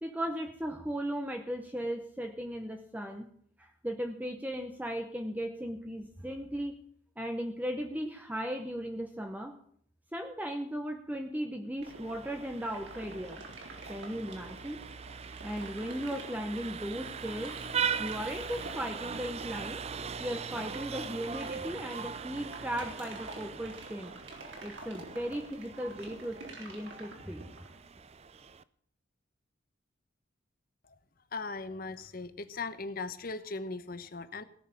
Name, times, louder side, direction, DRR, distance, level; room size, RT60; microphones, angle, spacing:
voice 1, 0.0-3.3 3.6-6.8 7.2-9.6 10.1-13.4 13.9-14.8 15.4-17.6 18.0-19.8 20.2-24.1 24.6-27.5, equal, 10° right, 4 dB, 0.9 m, -37 dB
Vehicle horn car horn honking, 11.8-28.6, right 6 dB, 30° right, 0.5 m, -40 dB
sound 1, 11.8-27.8, right 2 dB, 65° right, 3.7 m, -47 dB
voice 2, 31.3-34.4, left 3 dB, 45° left, 12 dB, 1.0 m, -39 dB
17.0 x 6.4 x 8.8 m, 0.62 s
head